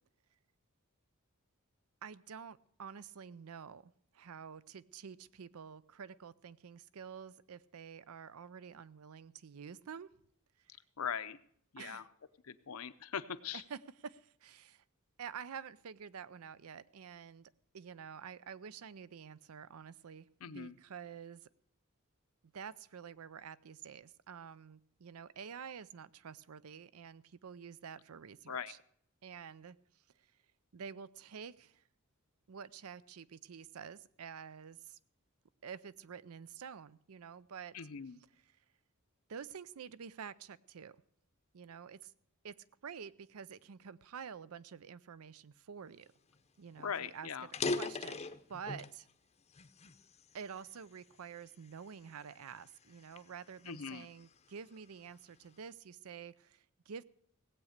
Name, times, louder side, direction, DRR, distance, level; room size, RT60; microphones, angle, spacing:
voice 1, 2.0-10.1 11.8-12.1 13.5-14.8 15.2-21.4 22.5-28.8 29.2-29.8 30.7-31.8 32.5-35.0 35.6-37.7 39.3-41.0 41.5-42.1 42.4-42.5 42.8-46.1 46.6-47.3 47.8-49.1 50.3-57.0, right 7 dB, 80° right, 18 dB, 0.5 m, -49 dB
voice 2, 11.0-11.4 11.7-12.0 12.4-13.6 20.4-20.8 28.5-28.7 37.7-38.2 46.8-47.5 53.7-54.1, left 7 dB, 75° left, 12 dB, 0.7 m, -41 dB
sound 1, 46.3-46.4 46.7-46.9 47.4-49.0 49.5-50.8 51.4-51.7 52.3-54.3, left 3 dB, 30° left, 0.7 m, -39 dB
17.5 x 8.4 x 6.5 m, 0.64 s
head